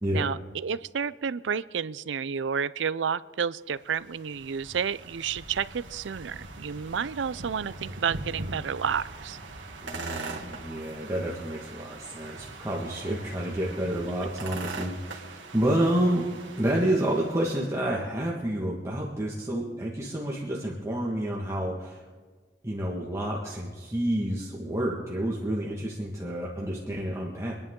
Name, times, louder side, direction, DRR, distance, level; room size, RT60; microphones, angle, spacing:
voice 1, 0.0-9.4, right 7 dB, 75° right, 17 dB, 0.5 m, -31 dB
sound 1, 3.7-17.7, right 3 dB, 90° right, 2.1 m, -42 dB
voice 2, 9.8-16.3 16.6-22.0 22.6-27.5, right 1 dB, 15° right, -4 dB, 1.7 m, -29 dB
26.5 x 10.5 x 3.8 m, 1.5 s
head